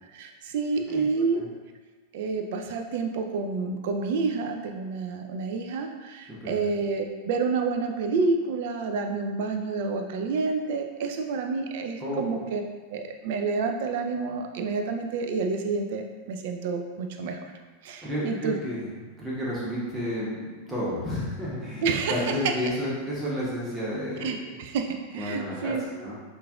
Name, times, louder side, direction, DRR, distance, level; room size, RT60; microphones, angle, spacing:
voice 1, 0.1-1.4 2.1-12.6 12.9-17.4 17.8-18.6 21.8-22.3 24.2-25.9, right 4 dB, 50° right, 5 dB, 0.4 m, -29 dB
voice 2, 12.0-12.4 18.0-21.8 22.1-24.5 25.1-26.1, equal, 10° right, -8 dB, 1.1 m, -31 dB
5.6 x 2.5 x 2.3 m, 1.4 s
figure-of-eight pair, 90°, 0 cm